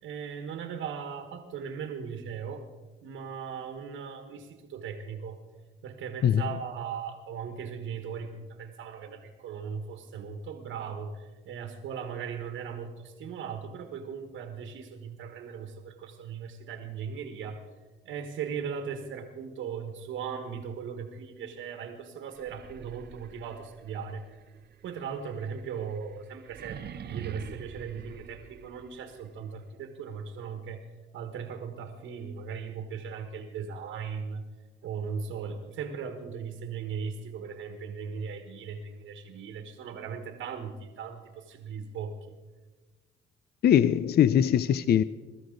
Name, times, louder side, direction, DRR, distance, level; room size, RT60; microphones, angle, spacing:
voice 1, 0.0-2.6 3.0-5.4 5.8-17.6 18.0-24.4 24.8-30.9 31.1-34.4 34.8-42.2, right 6 dB, 90° right, 5 dB, 1.6 m, -38 dB
sound 1, 22.3-29.2, right 7 dB, 55° right, 0.8 m, -46 dB
voice 2, 43.6-45.0, left 9 dB, 55° left, 15 dB, 0.5 m, -21 dB
22.5 x 13.0 x 3.9 m, 1.2 s
cardioid pair, 90°, 20 cm